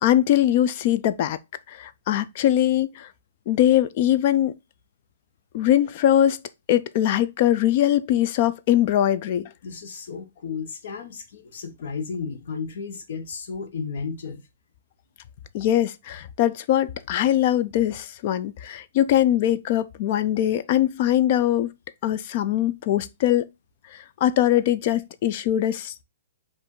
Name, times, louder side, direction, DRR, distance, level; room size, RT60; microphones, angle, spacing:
voice 1, 0.0-1.4 1.7-3.1 3.5-4.5 5.5-6.4 6.7-9.5 15.5-21.7 22.0-23.5 24.2-26.0, left 12 dB, 40° left, 0.4 m, -21 dB
voice 2, 9.6-14.4, left 5 dB, 60° left, 1.0 m, -33 dB
4.9 x 2.5 x 3.7 m
hypercardioid pair, 160°, 0 cm